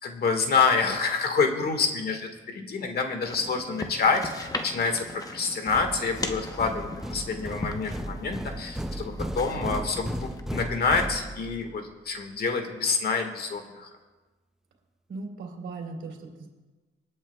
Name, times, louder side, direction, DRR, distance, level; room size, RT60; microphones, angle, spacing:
voice 1, 0.0-13.9, left 4 dB, 50° left, 5 dB, 1.7 m, -27 dB
sound 1, 3.2-10.4, left 2 dB, 20° left, 0.9 m, -39 dB
sound 2, 5.7-11.7, right 1 dB, ahead, 0.4 m, -35 dB
voice 2, 15.1-16.5, right 3 dB, 70° right, 0 dB, 2.9 m, -38 dB
26.0 x 8.7 x 2.3 m, 1.2 s
cardioid pair, 90°, 20 cm